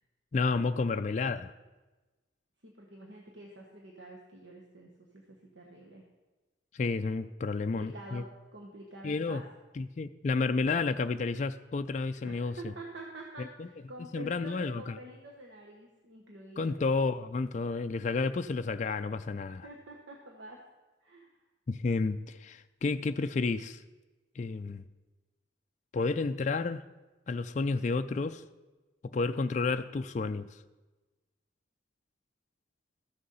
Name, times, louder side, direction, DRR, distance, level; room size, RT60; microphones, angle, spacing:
voice 1, 0.3-1.5 6.7-8.2 9.0-9.4 9.8-12.7 13.6-13.7 14.1-14.9 16.6-19.7 21.7-23.8 24.4-24.8 25.9-26.8 27.3-28.4 29.1-30.6, left 4 dB, 40° left, 8 dB, 0.3 m, -31 dB
voice 2, 2.6-6.0 7.8-9.4 12.2-16.7 19.3-20.6 21.0-21.3, right 2 dB, 75° right, 0 dB, 1.2 m, -47 dB
13.5 x 6.6 x 5.5 m, 1.2 s
head